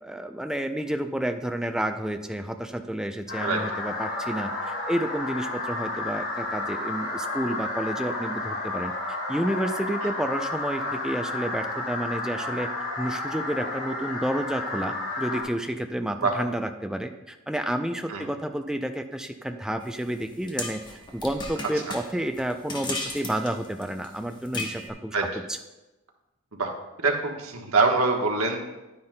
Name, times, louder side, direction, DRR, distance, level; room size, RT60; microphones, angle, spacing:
voice 1, 0.0-4.5 4.9-8.9 9.3-12.7 13.0-20.8 21.1-25.2 25.5-25.6, right 1 dB, 5° right, 6 dB, 0.4 m, -30 dB
sound 1, 3.3-15.4, left 2 dB, 60° left, 2.6 m, -32 dB
sound 2, 19.8-24.9, left 2 dB, 20° left, 0.9 m, -36 dB
voice 2, 27.0-28.6, right 3 dB, 80° right, 2 dB, 1.2 m, -24 dB
10.5 x 9.5 x 2.2 m, 1.0 s
head